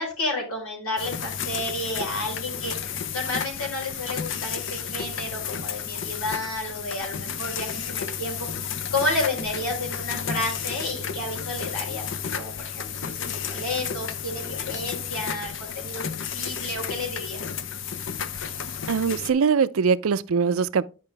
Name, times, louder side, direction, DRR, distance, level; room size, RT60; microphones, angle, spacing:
voice 1, 0.0-2.7 3.1-12.0 12.3-17.4, left 2 dB, 85° left, 4.2 m, -31 dB
sound 1, 1.0-19.3, left 7 dB, 60° left, 0.6 m, -32 dB
voice 2, 18.9-20.9, right 5 dB, 75° right, 0.5 m, -22 dB
10.5 x 5.3 x 3.3 m
head